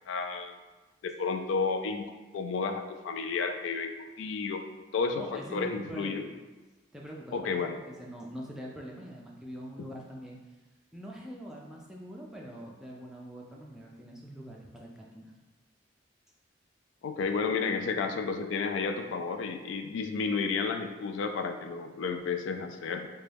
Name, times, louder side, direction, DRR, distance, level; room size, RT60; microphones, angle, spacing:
voice 1, 0.1-0.6 1.0-2.0 2.3-4.6 4.9-6.3 7.3-7.8 9.8-9.9 17.0-23.1, left 4 dB, 80° left, 6 dB, 0.3 m, -32 dB
voice 2, 5.2-6.2 6.9-10.4 10.9-15.3, equal, 5° right, -3 dB, 0.3 m, -44 dB
3.9 x 2.2 x 3.3 m, 1.2 s
head